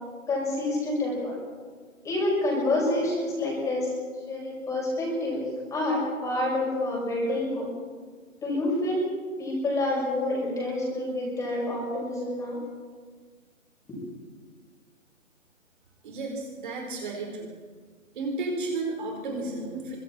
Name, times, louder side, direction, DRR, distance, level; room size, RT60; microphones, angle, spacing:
voice 1, 0.3-1.4 2.0-3.9 4.3-5.4 5.7-7.7 8.4-9.1 9.4-12.6 13.9-14.0, left 1 dB, 10° left, -3 dB, 7.0 m, -28 dB
voice 2, 16.0-17.5 18.1-20.0, right 2 dB, 35° right, 1 dB, 4.5 m, -32 dB
29.0 x 25.0 x 4.5 m, 1.5 s
figure-of-eight pair, 150°, 40 cm